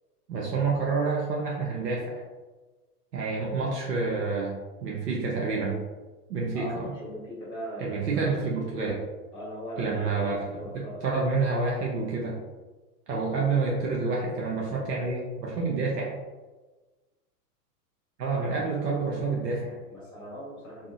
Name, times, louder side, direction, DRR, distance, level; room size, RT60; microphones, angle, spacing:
voice 1, 0.3-2.2 3.1-4.6 4.8-5.8 6.3-6.8 7.8-9.0 9.8-10.4 10.7-12.3 13.1-16.1 18.2-19.8, right 4 dB, 90° right, -3 dB, 0.7 m, -28 dB
voice 2, 6.5-8.8 9.3-11.3 18.3-18.9 19.9-20.9, equal, 10° left, -7 dB, 1.3 m, -40 dB
2.6 x 2.4 x 2.5 m, 1.2 s
hypercardioid pair, 115°, 47 cm